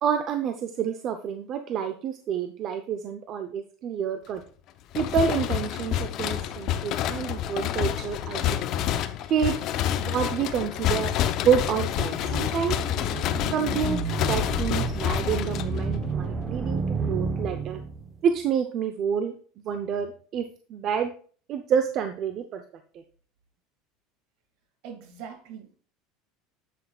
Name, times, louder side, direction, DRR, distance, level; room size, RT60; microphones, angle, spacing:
voice 1, 0.0-4.4 4.9-8.6 9.3-9.5 10.0-11.1 11.4-12.8 13.5-14.0 14.3-17.8 18.2-19.3 19.6-21.1 21.5-22.6, right 7 dB, 40° right, 7 dB, 0.6 m, -28 dB
sound 1, 4.9-16.1, left 11 dB, 50° left, 0.6 m, -28 dB
sound 2, 11.8-18.2, right 4 dB, 20° right, 1.0 m, -31 dB
voice 2, 24.8-25.8, right 7 dB, 65° right, 4 dB, 2.1 m, -42 dB
8.4 x 7.9 x 2.4 m, 0.42 s
cardioid pair, 150°, 0 cm